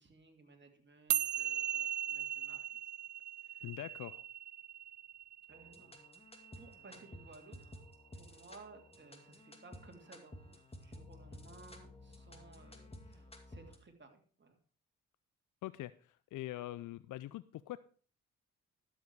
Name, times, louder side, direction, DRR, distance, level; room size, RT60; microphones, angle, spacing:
voice 1, 0.0-2.6 3.4-3.7 5.5-5.9 6.5-7.8 8.1-14.6, right 3 dB, 30° right, 3 dB, 3.0 m, -58 dB
sound 1, 1.1-7.7, right 12 dB, 55° right, 0.7 m, -39 dB
voice 2, 3.6-4.2 15.6-17.8, left 15 dB, 60° left, 16 dB, 0.5 m, -44 dB
sound 2, 5.5-13.8, left 1 dB, 15° left, 2.4 m, -54 dB
12.0 x 7.6 x 4.7 m, 0.42 s
supercardioid pair, 55°, 34 cm